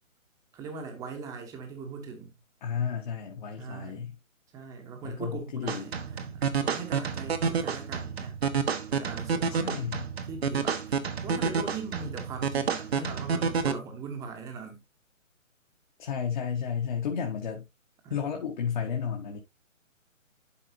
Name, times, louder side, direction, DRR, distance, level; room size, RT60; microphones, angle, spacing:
voice 1, 0.5-2.3 3.6-4.0 4.5-8.3 8.9-9.9 10.3-14.8 18.0-18.2, right 5 dB, 10° right, 1.2 m, -40 dB
voice 2, 2.6-4.1 5.0-5.9 9.5-10.0 16.0-17.6 18.1-19.4, left 7 dB, 35° left, 1.5 m, -32 dB
sound 1, 5.7-13.7, right 6 dB, 50° right, 1.2 m, -29 dB
11.5 x 4.8 x 2.8 m
figure-of-eight pair, 140°, 40 cm